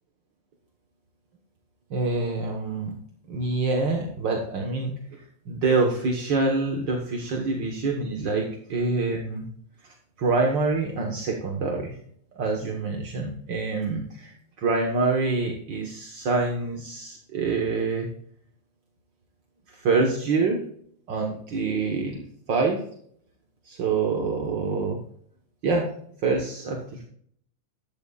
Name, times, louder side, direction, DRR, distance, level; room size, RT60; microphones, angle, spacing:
voice 1, 1.9-2.9 3.3-9.4 9.8-12.0 12.3-18.1 19.7-20.6 21.1-22.2 22.5-22.8 23.6-25.0 25.6-25.9 26.2-27.0, right 3 dB, 50° right, 1 dB, 1.4 m, -26 dB
13.5 x 12.5 x 2.4 m, 0.65 s
omnidirectional pair, 3.8 m